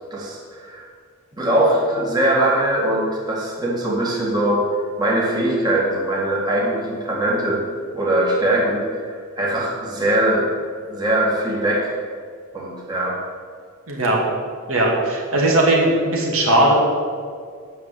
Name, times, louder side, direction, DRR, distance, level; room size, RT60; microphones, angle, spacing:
voice 1, 0.1-0.9 1.4-4.6 5.0-7.7 7.9-10.5 10.9-11.9 12.5-13.2, right 1 dB, 20° right, -5 dB, 1.9 m, -21 dB
voice 2, 13.9-14.2 14.7-16.7, right 1 dB, 75° right, -2 dB, 2.5 m, -18 dB
9.4 x 6.3 x 7.6 m, 2.1 s
head